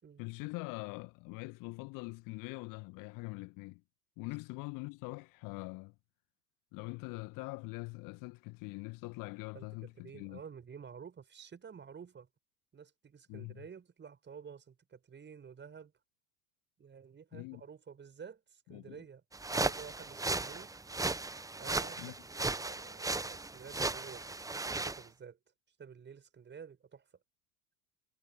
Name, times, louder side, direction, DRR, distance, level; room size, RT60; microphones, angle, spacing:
voice 1, 0.2-3.8 4.2-5.9 6.7-10.4 13.3-13.6 17.3-17.6 18.7-19.0 22.0-22.1, left 27 dB, 45° left, 1.5 m, -43 dB
voice 2, 9.5-12.3 12.7-15.9 16.8-19.2 19.5-20.7 21.6-25.4 25.8-27.0, right 7 dB, 25° right, 6.8 m, -51 dB
sound 1, 19.3-25.0, right 3 dB, 5° right, 1.3 m, -36 dB
figure-of-eight pair, 75°, 47 cm